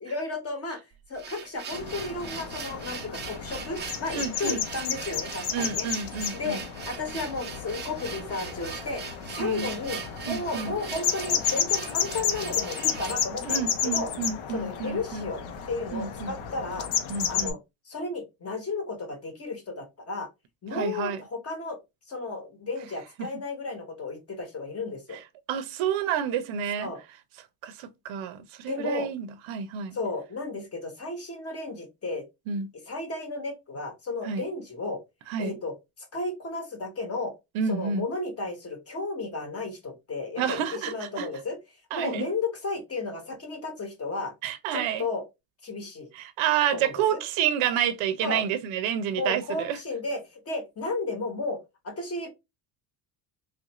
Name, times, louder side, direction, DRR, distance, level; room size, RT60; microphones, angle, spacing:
voice 1, 0.0-0.8 1.1-5.9 6.3-14.1 14.5-15.4 15.7-16.9 17.3-17.6 17.9-20.3 20.6-21.8 22.1-25.2 26.8-27.0 28.7-29.1 29.9-32.2 32.9-35.0 35.4-37.3 37.7-41.6 41.9-44.3 44.7-45.2 45.6-46.1 46.7-47.2 48.2-48.4 49.1-52.3, left 3 dB, 30° left, 1.0 m, -33 dB
sound 1, 0.9-13.3, right 7 dB, 25° right, 0.4 m, -40 dB
sound 2, 1.7-17.5, left 8 dB, 80° left, 0.8 m, -32 dB
voice 2, 4.1-4.6 5.5-6.6 9.4-9.7 10.3-10.7 13.4-15.3 15.9-16.3 17.1-17.6 20.7-21.2 25.5-26.9 27.6-30.0 32.5-32.7 34.2-34.4 35.3-35.6 37.5-38.1 40.4-41.3 41.9-42.3 44.4-45.1 46.1-49.8, right 8 dB, 75° right, 0.7 m, -29 dB
3.4 x 2.4 x 2.9 m
cardioid pair, 130°, 48 cm